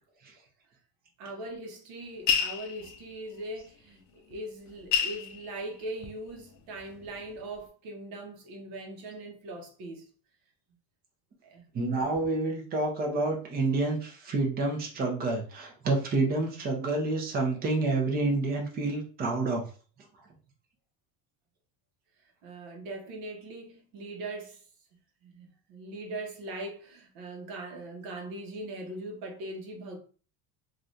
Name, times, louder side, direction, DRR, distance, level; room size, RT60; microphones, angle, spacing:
voice 1, 1.2-10.1 11.4-11.7 22.4-24.6 25.2-30.0, right 1 dB, 60° right, 0.9 m, -40 dB
sound 1, 2.3-3.2 4.3-4.4 4.7-6.3 6.8-7.4, left 8 dB, 45° left, 0.4 m, -29 dB
voice 2, 11.7-19.6, right 3 dB, 25° right, 0.6 m, -28 dB
3.1 x 2.5 x 2.6 m
cardioid pair, 175°, 41 cm